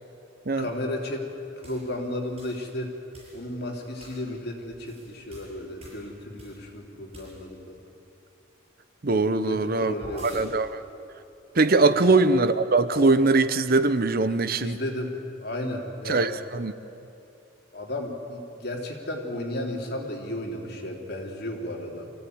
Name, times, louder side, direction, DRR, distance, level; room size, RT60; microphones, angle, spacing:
voice 1, 0.6-1.3 1.6-2.9 3.3-7.8 9.2-10.5 11.8-12.0 14.6-15.1 15.4-16.6 17.7-22.1, left 1 dB, 55° left, 0 dB, 3.3 m, -34 dB
sound 1, 1.6-1.8 2.4-2.6 3.1-3.4 4.0-4.3 4.7-6.7 7.1-7.6 9.5-10.5 11.6-12.3 12.9-13.2, right 1 dB, 30° right, 7.3 m, -43 dB
voice 2, 9.0-9.9 10.2-10.8 11.6-14.8 16.1-16.7, right 3 dB, 50° right, 13 dB, 0.8 m, -21 dB
24.5 x 16.0 x 9.5 m, 2.7 s
head